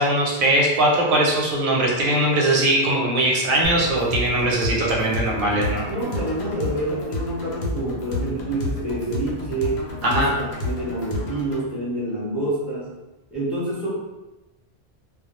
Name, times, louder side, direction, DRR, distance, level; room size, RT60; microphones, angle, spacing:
voice 1, 0.0-5.9 10.0-10.3, right 1 dB, 60° right, -2 dB, 0.7 m, -20 dB
sound 1, 3.6-11.6, left 1 dB, 85° left, 0.8 m, -30 dB
voice 2, 5.8-12.9 13.3-13.9, right 1 dB, ahead, -8 dB, 0.7 m, -27 dB
2.2 x 2.0 x 2.9 m, 1.1 s
omnidirectional pair, 1.1 m